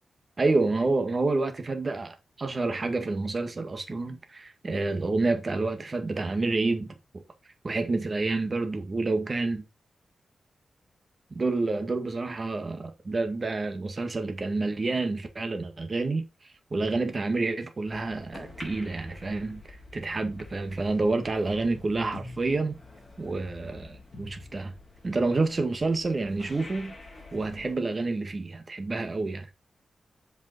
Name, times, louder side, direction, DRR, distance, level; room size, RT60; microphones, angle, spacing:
voice 1, 0.4-7.2 7.6-9.7 11.3-16.2 16.7-22.8 23.2-24.7 25.0-27.0 27.3-29.5, right 3 dB, 35° right, 1.7 m, -28 dB
sound 1, 17.8-27.8, left 2 dB, 30° left, 4.7 m, -47 dB
8.0 x 5.4 x 4.3 m
wide cardioid pair, 140°, 0 cm